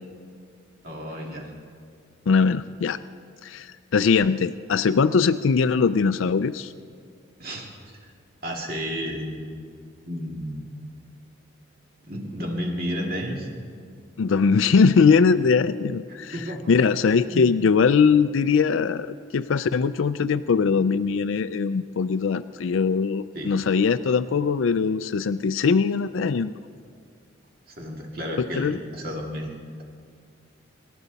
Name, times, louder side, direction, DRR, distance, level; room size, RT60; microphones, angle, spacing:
voice 1, 0.8-1.5 7.4-8.0 8.4-9.4 10.1-10.9 12.0-13.5 16.1-16.6 17.3-17.4 23.3-23.6 27.7-29.8, equal, 50° right, -1 dB, 2.5 m, -32 dB
voice 2, 2.3-3.0 3.4-6.7 14.2-16.3 16.7-26.5 28.4-28.8, left 5 dB, 85° left, 11 dB, 0.4 m, -21 dB
27.0 x 13.0 x 4.1 m, 2.2 s
head